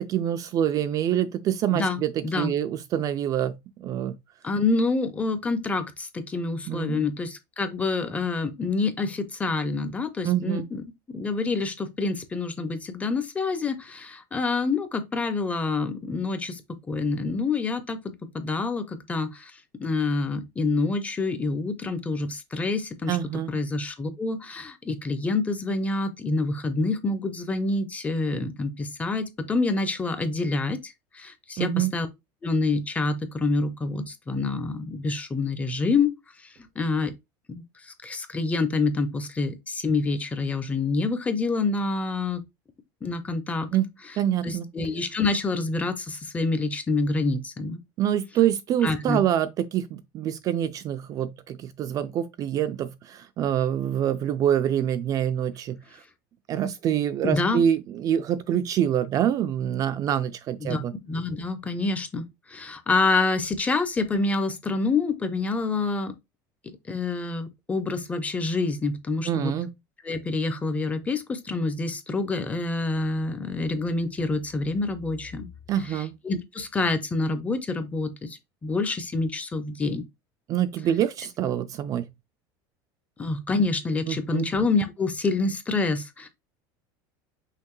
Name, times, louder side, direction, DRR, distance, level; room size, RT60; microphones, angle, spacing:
voice 1, 0.0-4.2 6.7-7.1 10.2-10.7 23.1-23.5 31.6-31.9 43.7-43.8 44.2-44.7 48.0-55.8 56.5-60.9 69.3-69.7 75.7-76.1 80.5-82.1 84.1-84.5, right 10 dB, 35° right, 0.3 m, -26 dB
voice 2, 1.7-2.5 4.4-16.6 16.9-19.5 19.8-23.2 23.5-32.1 32.4-36.1 36.8-37.1 37.9-42.4 43.0-43.7 44.4-47.8 48.8-49.2 57.2-57.6 60.6-60.8 61.1-66.1 66.9-69.5 70.0-75.5 75.9-80.0 83.2-86.3, left 3 dB, 15° left, 0.6 m, -27 dB
5.7 x 2.6 x 3.0 m
supercardioid pair, 145°, 10 cm